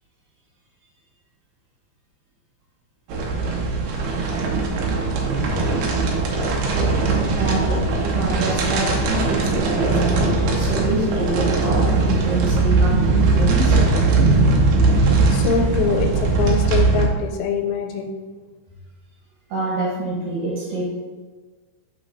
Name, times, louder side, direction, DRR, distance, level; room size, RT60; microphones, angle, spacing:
sound 1, 3.1-17.0, right 3 dB, 85° right, 1.9 m, -19 dB
voice 1, 7.4-13.8 19.5-21.0, right 2 dB, 65° right, -5 dB, 2.4 m, -26 dB
voice 2, 15.3-18.1, left 5 dB, 85° left, 3 dB, 2.8 m, -23 dB
6.9 x 6.3 x 2.7 m, 1.4 s
omnidirectional pair, 5.1 m